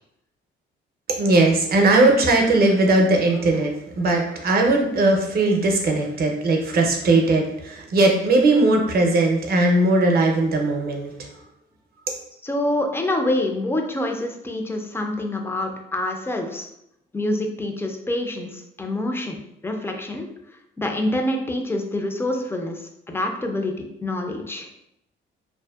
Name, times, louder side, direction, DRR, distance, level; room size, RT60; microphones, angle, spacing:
voice 1, 1.2-11.1, right 2 dB, 50° right, 2 dB, 0.6 m, -19 dB
voice 2, 12.4-16.7 17.1-20.3 20.8-24.7, left 1 dB, 10° left, 3 dB, 0.3 m, -26 dB
2.6 x 2.1 x 2.3 m, 0.81 s
cardioid pair, 90°, 20 cm